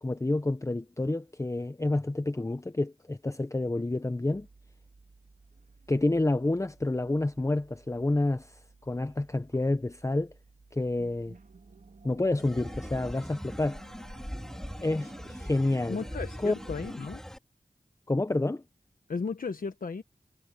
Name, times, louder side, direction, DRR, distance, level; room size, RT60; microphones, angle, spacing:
voice 1, 0.0-4.5 5.9-8.6 8.9-10.3 10.7-11.4 12.0-13.8 14.8-16.0 16.4-16.6 16.9-17.0 18.1-18.6, left 2 dB, 20° left, 0.7 m, -29 dB
sound 1, 4.3-17.0, right 4 dB, 80° right, 3.2 m, -54 dB
sound 2, 12.4-17.4, equal, 5° left, 2.2 m, -41 dB
voice 2, 15.9-17.2 19.1-20.0, left 4 dB, 85° left, 1.1 m, -35 dB
wide cardioid pair, 50°, 14 cm